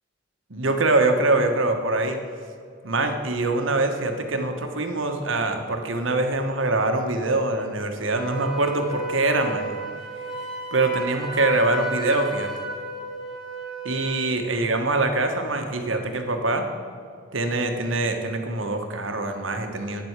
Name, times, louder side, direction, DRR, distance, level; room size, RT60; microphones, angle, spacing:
voice 1, 0.5-2.2 2.8-9.7 10.7-12.5 13.8-16.7 17.3-20.0, right 2 dB, 80° right, 5 dB, 1.4 m, -24 dB
Wind instrument woodwind instrument, 8.1-14.4, right 1 dB, ahead, 3.2 m, -33 dB
9.6 x 7.8 x 8.1 m, 2.3 s
head